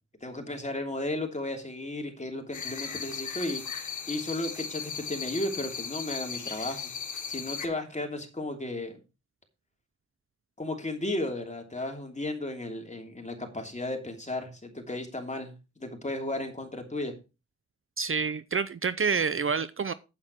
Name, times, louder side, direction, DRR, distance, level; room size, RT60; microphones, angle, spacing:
voice 1, 0.2-3.6 4.1-6.9 7.3-9.0 10.6-17.1, left 1 dB, 25° left, 3.0 m, -34 dB
sound 1, 2.5-7.7, left 6 dB, 80° left, 1.6 m, -37 dB
voice 2, 18.0-19.9, right 5 dB, 45° right, 0.6 m, -28 dB
8.7 x 8.5 x 4.6 m
wide cardioid pair, 75°, 30 cm